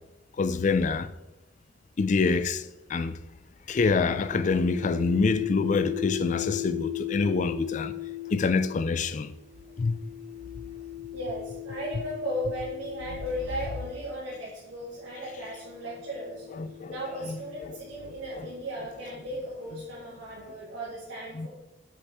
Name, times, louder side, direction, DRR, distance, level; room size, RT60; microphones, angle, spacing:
voice 1, 0.4-1.1 2.0-2.6 2.9-3.1 3.7-7.9 8.3-9.3 9.8-10.0 16.6-17.0 17.3-17.4 21.4-21.5, left 4 dB, 40° left, 0.3 m, -26 dB
sound 1, 4.0-14.4 15.3-19.0, left 14 dB, 60° right, 1.6 m, -38 dB
voice 2, 11.1-16.5 16.9-21.5, equal, 90° right, 1.7 m, -36 dB
7.4 x 4.2 x 3.5 m
head